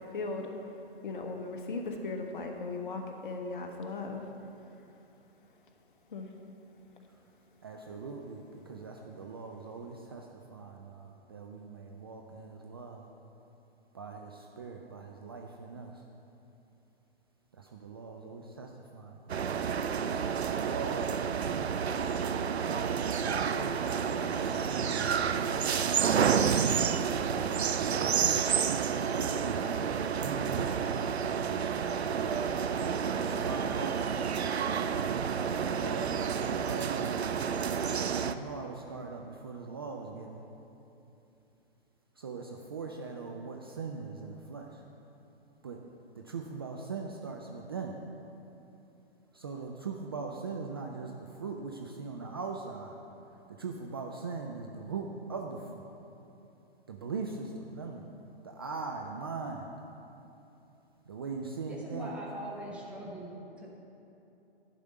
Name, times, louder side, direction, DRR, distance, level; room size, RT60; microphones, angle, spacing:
voice 1, 0.1-0.5 1.0-4.2 6.1-6.3, left 3 dB, 55° left, 4 dB, 1.2 m, -37 dB
voice 2, 7.6-13.1 13.9-15.9 17.6-19.4 20.3-21.5 21.9-25.7 27.9-31.2 33.1-33.9 35.4-37.2 37.8-40.4 42.2-44.7 45.6-45.8 46.2-47.9 49.3-51.1 51.4-53.0 53.5-55.8 56.9-58.0 58.4-59.7 61.1-62.1, right 4 dB, 25° right, 1 dB, 0.3 m, -41 dB
sound 1, 19.3-38.3, right 7 dB, 85° right, 0.5 m, -30 dB
voice 3, 61.7-63.7, right 1 dB, 5° right, -4 dB, 0.7 m, -41 dB
11.0 x 4.9 x 6.6 m, 2.9 s
figure-of-eight pair, 125°, 31 cm